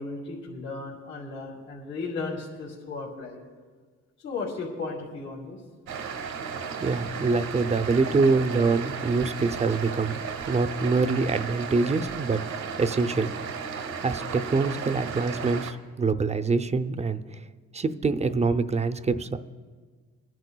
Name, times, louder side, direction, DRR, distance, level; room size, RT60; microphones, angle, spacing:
voice 1, 0.0-3.4 4.2-5.6, left 3 dB, 70° left, -7 dB, 2.7 m, -35 dB
sound 1, 5.9-15.7, right 6 dB, 85° right, 1.0 m, -34 dB
voice 2, 6.8-10.2 10.5-13.3 14.0-17.2 17.7-19.4, right 4 dB, 20° right, 10 dB, 0.5 m, -25 dB
28.5 x 11.0 x 2.3 m, 1.5 s
cardioid pair, 90°, 30 cm